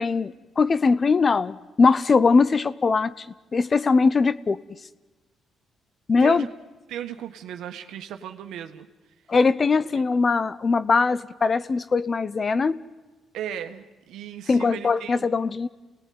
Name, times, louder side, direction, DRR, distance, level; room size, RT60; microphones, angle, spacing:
voice 1, 0.0-3.3 3.5-4.6 6.1-6.5 9.3-12.8 14.5-15.7, left 4 dB, 35° left, 16 dB, 0.8 m, -21 dB
voice 2, 6.9-8.9 9.9-10.0 13.3-15.3, right 10 dB, 85° right, 7 dB, 1.6 m, -36 dB
28.5 x 19.0 x 9.6 m, 1.2 s
cardioid pair, 90°, 0 cm